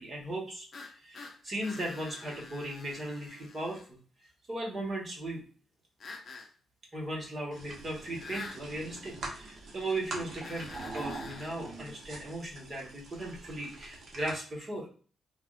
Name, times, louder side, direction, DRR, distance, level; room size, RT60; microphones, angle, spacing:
voice 1, 0.0-3.8 4.5-5.4 6.9-14.9, right 1 dB, 30° right, -2 dB, 1.2 m, -37 dB
sound 1, 0.7-3.9 6.0-6.5 8.2-8.6 10.4-11.6, left 4 dB, 45° left, 0.6 m, -46 dB
sound 2, 7.5-14.3, right 2 dB, 50° right, 0.9 m, -43 dB
3.4 x 2.4 x 2.3 m, 0.40 s
cardioid pair, 110°, 0 cm